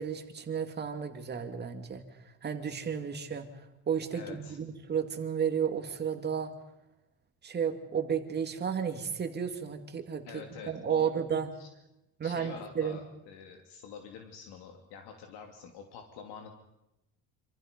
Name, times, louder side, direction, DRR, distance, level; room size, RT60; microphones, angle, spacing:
voice 1, 0.0-2.0 2.4-6.5 7.4-11.5 12.2-13.0, right 7 dB, 25° right, 6 dB, 2.4 m, -33 dB
voice 2, 4.1-4.6 10.2-11.1 11.5-11.7 12.2-16.5, left 6 dB, 70° left, 3 dB, 2.9 m, -46 dB
27.0 x 27.0 x 5.3 m, 0.89 s
cardioid pair, 165°, 40 cm